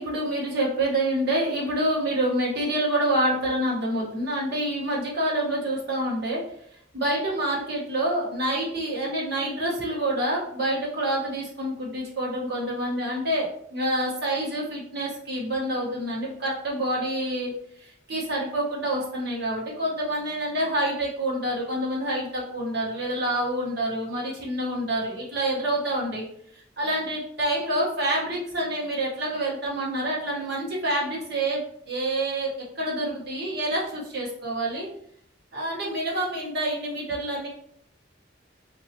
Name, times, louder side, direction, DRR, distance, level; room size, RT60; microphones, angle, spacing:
voice 1, 0.0-6.4 6.9-26.2 26.5-32.5 32.7-34.9 35.5-37.5, right 1 dB, 60° right, -4 dB, 1.4 m, -27 dB
4.1 x 2.9 x 2.9 m, 0.67 s
head